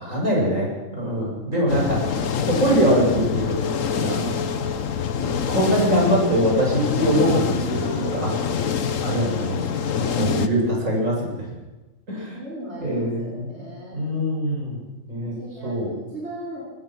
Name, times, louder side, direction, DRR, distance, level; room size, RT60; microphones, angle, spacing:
voice 1, 0.0-2.0 2.5-3.6 4.0-4.2 5.1-8.3 9.0-9.6 10.0-11.4 12.1-12.3 12.8-13.3 13.9-14.8 15.1-15.3 15.6-15.9, equal, 80° right, -3 dB, 8.0 m, -22 dB
sound 1, 1.7-10.5, left 7 dB, 85° left, 1.4 m, -26 dB
voice 2, 4.1-5.0 7.1-8.9 10.0-10.4 12.3-14.1 15.4-16.7, right 2 dB, 55° right, -6 dB, 5.7 m, -37 dB
24.0 x 19.5 x 6.3 m, 1.1 s
omnidirectional pair, 1.3 m